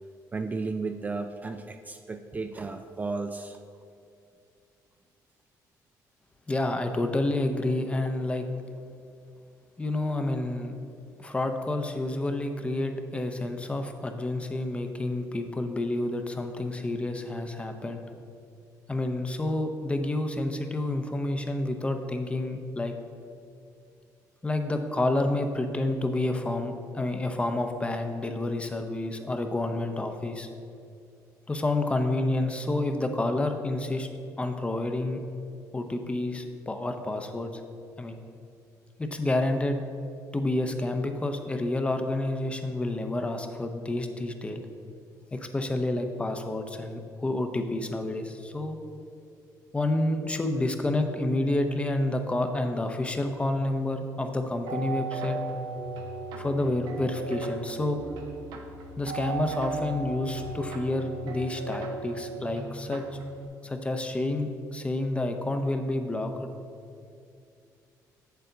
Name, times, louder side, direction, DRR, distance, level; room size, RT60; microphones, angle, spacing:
voice 1, 0.3-3.6, right 3 dB, 25° right, 7 dB, 0.3 m, -34 dB
voice 2, 6.5-8.4 9.8-10.7 11.2-18.0 18.9-22.9 24.4-30.5 31.5-34.1 34.4-35.2 35.7-37.5 38.0-38.2 39.0-39.8 40.3-44.6 45.3-48.8 49.7-55.4 56.4-58.0 59.0-63.0 63.6-66.5, left 2 dB, 15° left, 6 dB, 0.7 m, -29 dB
sound 1, 54.7-63.5, right 4 dB, 85° right, 0.9 m, -37 dB
7.7 x 6.9 x 3.9 m, 2.5 s
cardioid pair, 105°, 7 cm